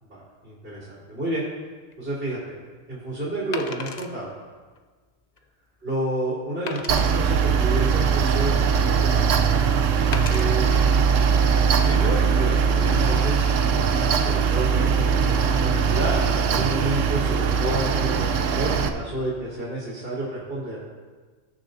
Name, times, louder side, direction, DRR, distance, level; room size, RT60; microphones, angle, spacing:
voice 1, 0.1-1.5 2.0-2.5 2.9-4.3 5.8-9.3 10.3-10.8 11.8-13.4 13.7-20.8, right 1 dB, 60° right, -8 dB, 3.5 m, -30 dB
Wood, 1.9-2.1 3.5-4.1 4.7-4.8 5.4-5.5 6.7-7.1 7.9-8.7 10.1-10.5 11.2-11.4, left 5 dB, 45° left, 0.6 m, -35 dB
Mechanical fan, 6.9-18.9, right 6 dB, 85° right, 1.0 m, -21 dB
19.5 x 6.6 x 2.7 m, 1.4 s
omnidirectional pair, 1.3 m